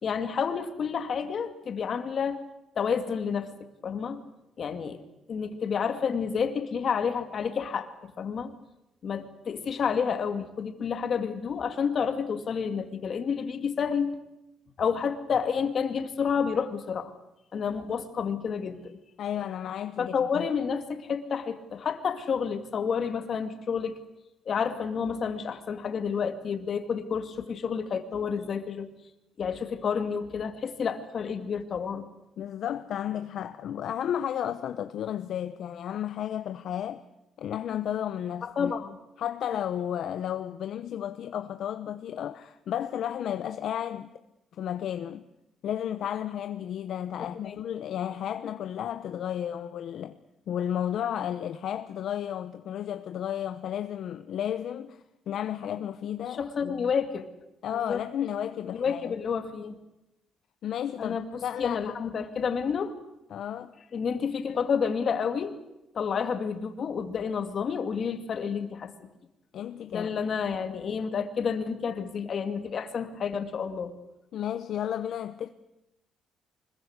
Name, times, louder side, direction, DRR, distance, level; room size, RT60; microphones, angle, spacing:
voice 1, 0.0-2.4 2.7-3.5 3.8-4.2 4.6-5.0 5.3-8.5 9.0-14.2 14.8-17.1 17.5-18.9 20.0-23.9 24.5-28.9 29.4-32.1 38.4-39.0 47.2-47.6 56.4-57.3 57.7-58.0 58.7-59.8 61.0-62.9 63.9-65.5 65.9-69.1 69.9-73.9, left 6 dB, 45° left, 2.5 m, -30 dB
voice 2, 19.2-20.5 32.4-37.1 37.4-38.7 39.2-44.1 44.6-45.2 45.6-50.2 50.5-56.9 57.6-59.2 60.6-62.0 63.3-63.7 69.5-70.1 74.3-75.5, left 10 dB, 60° left, 0.9 m, -33 dB
25.5 x 21.5 x 8.2 m
cardioid pair, 135°, 0 cm